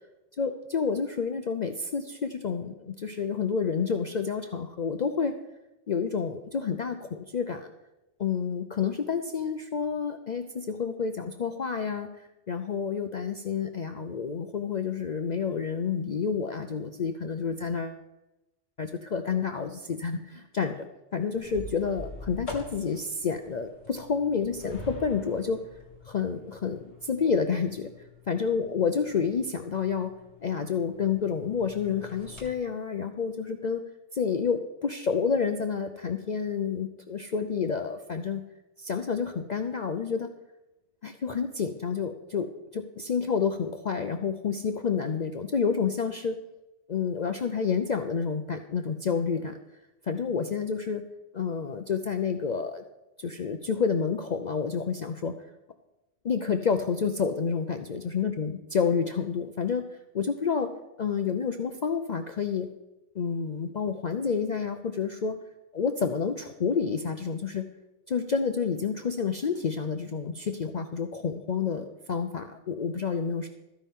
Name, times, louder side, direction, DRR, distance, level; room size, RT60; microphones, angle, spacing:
voice 1, 0.4-5.4 5.9-7.7 8.2-18.0 18.8-20.9 21.1-25.6 26.0-27.9 28.3-30.1 30.4-33.8 34.1-38.4 38.8-40.3 41.0-46.4 46.9-49.6 50.0-51.0 51.3-52.8 53.2-55.3 56.2-59.8 60.1-60.7 61.0-62.7 63.2-65.4 65.7-67.6 68.1-73.5, left 6 dB, 45° left, 6 dB, 0.6 m, -29 dB
sound 1, 21.3-32.5, left 1 dB, 65° left, 2.8 m, -45 dB
13.5 x 9.9 x 3.6 m, 0.96 s
omnidirectional pair, 1.2 m